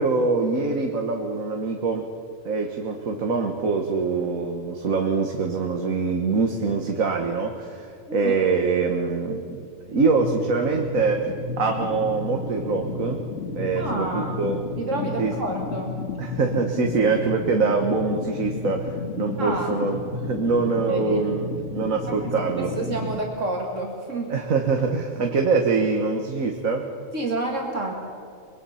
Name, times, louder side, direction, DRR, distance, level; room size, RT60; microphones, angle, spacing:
voice 1, 0.0-2.1 2.5-7.9 8.1-9.6 9.9-11.3 11.6-13.2 13.5-14.6 15.2-15.3 16.2-22.7 24.3-26.9, right 4 dB, 90° right, 3 dB, 1.8 m, -24 dB
voice 2, 8.1-8.4 13.8-14.4 14.8-16.0 19.4-19.7 20.9-21.2 22.2-24.3 27.1-27.9, right 2 dB, 65° right, 0 dB, 2.4 m, -29 dB
sound 1, 10.2-23.2, left 3 dB, 60° left, 1.8 m, -32 dB
25.0 x 22.0 x 5.7 m, 2.3 s
omnidirectional pair, 1.4 m